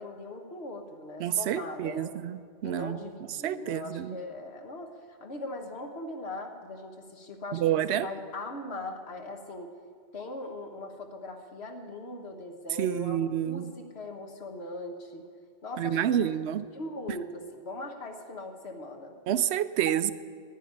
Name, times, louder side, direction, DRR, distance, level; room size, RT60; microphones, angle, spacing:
voice 1, 0.0-2.1 2.6-9.7 10.1-15.3 15.6-19.1, left 2 dB, 75° left, 4 dB, 1.6 m, -40 dB
voice 2, 1.2-3.0 3.4-4.2 7.5-8.1 12.8-13.7 15.8-16.6 19.3-20.1, right 10 dB, 80° right, 15 dB, 0.8 m, -28 dB
11.0 x 9.7 x 10.0 m, 2.1 s
omnidirectional pair, 1.1 m